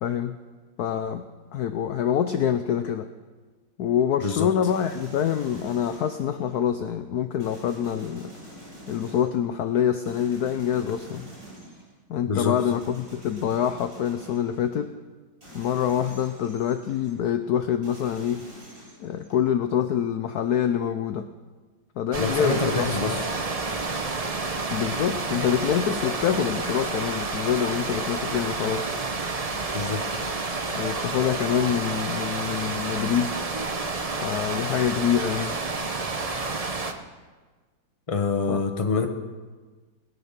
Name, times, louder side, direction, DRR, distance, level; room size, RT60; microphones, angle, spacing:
voice 1, 0.0-0.4 0.8-1.3 1.5-3.1 3.8-8.3 8.9-11.3 12.1-14.9 15.5-18.5 19.0-21.3 22.0-22.9 24.7-28.9 30.7-33.3 34.2-35.6 38.5-38.6, left 9 dB, 70° left, 9 dB, 1.0 m, -26 dB
voice 2, 4.2-4.5 12.3-12.5 22.2-23.3 29.7-30.0 38.1-39.1, left 4 dB, 20° left, 6 dB, 1.0 m, -25 dB
sound 1, 4.6-6.6 7.4-9.5 10.0-12.0 12.6-14.8 15.4-17.1 17.8-19.5, equal, 25° right, 7.1 m, -46 dB
sound 2, 22.1-36.9, right 3 dB, 45° right, 0.4 m, -30 dB
20.5 x 9.5 x 5.9 m, 1.3 s
omnidirectional pair, 2.2 m